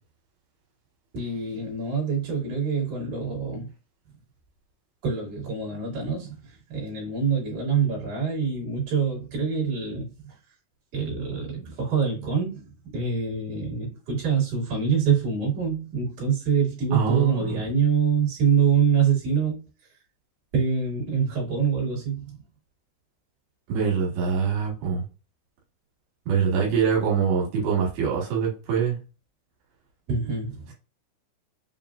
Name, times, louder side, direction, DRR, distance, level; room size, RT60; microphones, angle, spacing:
voice 1, 1.1-3.7 5.0-10.4 10.9-19.6 20.5-22.4 30.1-30.7, right 6 dB, 60° right, 3.8 m, -25 dB
voice 2, 16.9-17.5 23.7-25.0 26.3-29.0, right 6 dB, 85° right, 3.9 m, -24 dB
7.2 x 2.6 x 2.5 m
omnidirectional pair, 4.7 m